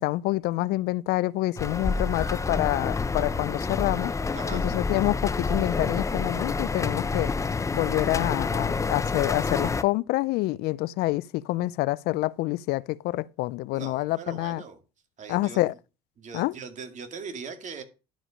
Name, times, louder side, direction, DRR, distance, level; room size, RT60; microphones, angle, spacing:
voice 1, 0.0-4.1 4.5-7.3 7.7-14.6 15.3-15.7 16.3-16.5, left 19 dB, 70° left, 0.4 m, -27 dB
sound 1, 1.6-9.8, left 4 dB, 20° left, 0.6 m, -28 dB
voice 2, 4.3-4.6 13.7-14.8 15.2-15.6 16.2-17.8, right 5 dB, 45° right, 2.2 m, -40 dB
11.5 x 5.0 x 5.0 m
supercardioid pair, 75°, 17 cm